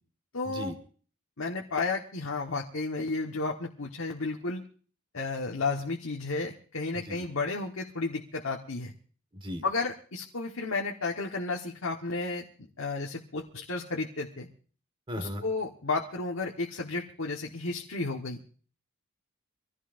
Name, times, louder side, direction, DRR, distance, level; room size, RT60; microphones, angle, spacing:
voice 1, 0.3-0.7 1.4-4.6 5.1-8.9 9.6-12.4 12.8-14.5 15.2-18.4, left 3 dB, 70° left, 0 dB, 1.4 m, -32 dB
voice 2, 6.9-7.2 9.3-9.6 15.1-15.4, left 1 dB, 25° right, 8 dB, 1.6 m, -37 dB
25.0 x 15.5 x 2.6 m, 0.43 s
head